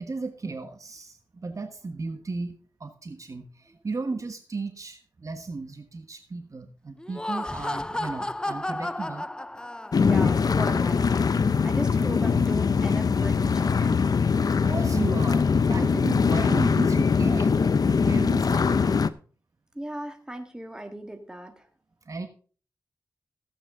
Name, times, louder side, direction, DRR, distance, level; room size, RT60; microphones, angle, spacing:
voice 1, 0.0-9.3 14.4-17.5 17.9-19.0 22.1-22.3, right 3 dB, 45° right, 7 dB, 1.3 m, -35 dB
Laughter, 7.0-10.3, left 1 dB, 10° left, 0.4 m, -32 dB
sound 1, 9.9-19.1, left 5 dB, 55° left, 0.6 m, -22 dB
voice 2, 10.0-14.0 19.7-21.7, right 1 dB, 10° right, 5 dB, 1.8 m, -38 dB
15.5 x 8.6 x 3.7 m, 0.40 s
wide cardioid pair, 80°, 8 cm